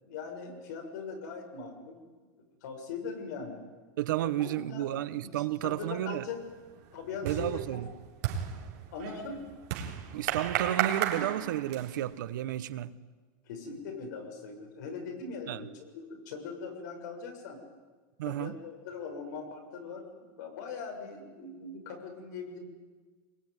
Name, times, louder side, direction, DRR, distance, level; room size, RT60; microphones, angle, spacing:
voice 1, 0.0-2.0 2.6-3.6 4.2-4.9 5.2-5.3 5.6-6.4 6.9-7.8 8.9-9.4 13.4-17.6 18.2-22.6, left 4 dB, 65° left, 6.9 m, -41 dB
voice 2, 4.0-6.3 7.2-7.9 10.1-12.9 15.5-15.7 18.2-18.5, right 13 dB, 75° right, 1.2 m, -32 dB
sound 1, 5.6-6.0 6.3-12.1, right 10 dB, 50° right, 3.9 m, -34 dB
24.5 x 22.0 x 9.9 m
supercardioid pair, 175°, 10 cm